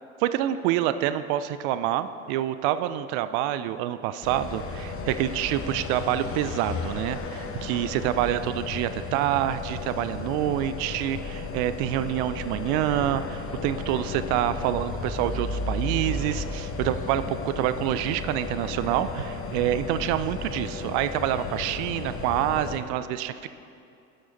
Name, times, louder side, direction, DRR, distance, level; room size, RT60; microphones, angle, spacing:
voice 1, 0.2-23.5, right 12 dB, 55° right, 12 dB, 0.5 m, -27 dB
sound 1, 4.2-22.8, left 3 dB, 35° left, 1.2 m, -34 dB
12.0 x 6.6 x 4.1 m, 2.5 s
hypercardioid pair, 70°, 36 cm